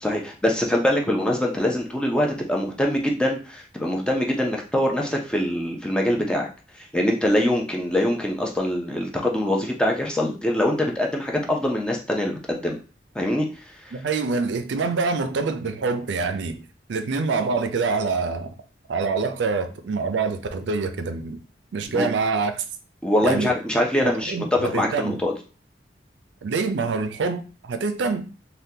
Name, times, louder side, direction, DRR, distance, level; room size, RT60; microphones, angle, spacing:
voice 1, 0.0-6.5 6.8-12.8 13.1-13.9 21.9-22.1 23.0-24.4 24.7-25.3, left 1 dB, 5° left, 0.5 m, -24 dB
voice 2, 13.9-16.6 16.9-18.5 18.9-21.4 21.7-22.6 23.2-23.5 24.0-25.2 26.4-28.3, right 4 dB, 80° right, 0.4 m, -25 dB
3.5 x 2.2 x 2.7 m
head